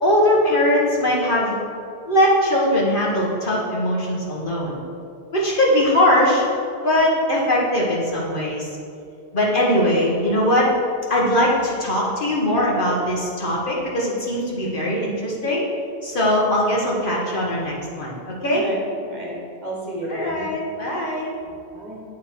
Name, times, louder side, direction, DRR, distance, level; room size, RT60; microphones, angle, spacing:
voice 1, 0.0-1.6 2.1-4.8 5.3-6.4 6.8-8.7 9.3-10.7 11.1-15.6 16.0-18.6 20.1-21.3, left 1 dB, 50° left, -4 dB, 1.4 m, -20 dB
voice 2, 18.5-19.4 19.6-20.4 21.4-22.0, right 1 dB, 45° right, -3 dB, 1.4 m, -32 dB
9.7 x 3.7 x 4.5 m, 2.4 s
omnidirectional pair, 1.1 m